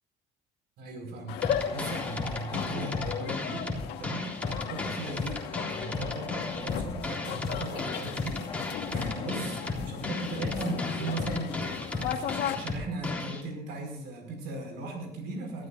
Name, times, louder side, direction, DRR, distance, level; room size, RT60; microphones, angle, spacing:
voice 1, 0.8-3.7 4.0-11.6 11.9-15.7, right 2 dB, 80° right, 2 dB, 4.9 m, -38 dB
sound 1, 1.3-12.5, left 8 dB, 85° left, 1.5 m, -36 dB
sound 2, 1.4-13.4, left 3 dB, 10° left, 3.6 m, -34 dB
sound 3, 1.5-9.3, left 5 dB, 30° left, 1.8 m, -44 dB
22.0 x 14.0 x 2.6 m, 0.76 s
cardioid pair, 110°, 17 cm